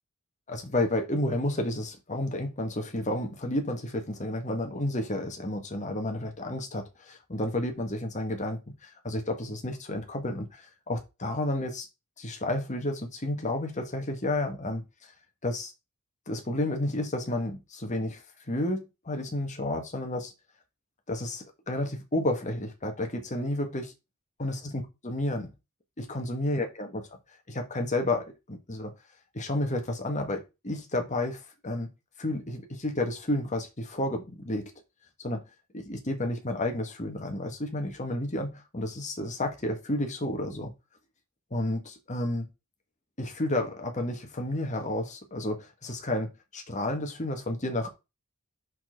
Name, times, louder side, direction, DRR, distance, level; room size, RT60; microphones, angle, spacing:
voice 1, 0.5-11.9 12.2-15.1 15.4-15.7 16.3-20.3 21.1-23.9 24.4-25.5 26.0-27.1 27.5-28.9 29.3-31.9 32.2-34.7 35.2-35.4 35.7-40.7 41.5-42.5 43.2-47.9, left 1 dB, 35° left, 1.6 m, -31 dB
6.3 x 5.9 x 3.8 m
head